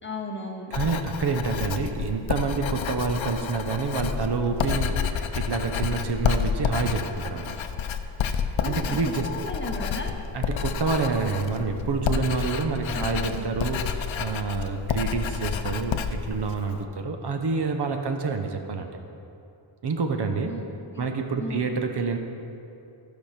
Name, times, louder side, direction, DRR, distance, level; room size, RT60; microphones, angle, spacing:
voice 1, 0.0-0.7 8.6-9.0 9.2-10.1 12.9-13.4 20.4-20.7 20.9-21.1 21.4-21.7, left 1 dB, 25° left, 2 dB, 1.0 m, -35 dB
Writing, 0.7-16.8, left 7 dB, 75° left, 0.7 m, -29 dB
voice 2, 0.7-7.5 8.7-9.3 10.3-18.9 19.8-20.5 21.0-22.2, right 4 dB, 55° right, 5 dB, 0.9 m, -28 dB
15.0 x 5.2 x 5.8 m, 2.7 s
wide cardioid pair, 115°, 47 cm